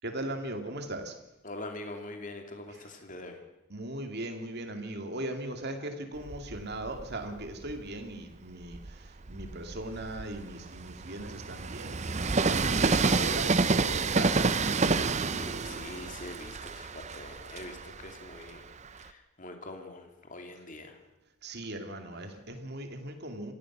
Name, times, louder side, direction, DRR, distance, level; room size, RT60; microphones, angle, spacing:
voice 1, 0.0-1.2 2.7-2.9 3.7-14.7 21.4-23.5, right 1 dB, 50° right, 6 dB, 2.5 m, -39 dB
voice 2, 1.4-3.4 15.2-21.0, left 2 dB, 35° left, 5 dB, 2.6 m, -44 dB
Train, 6.2-7.9 8.5-19.1, right 4 dB, 30° right, 0.7 m, -29 dB
26.5 x 16.0 x 6.2 m, 0.94 s
head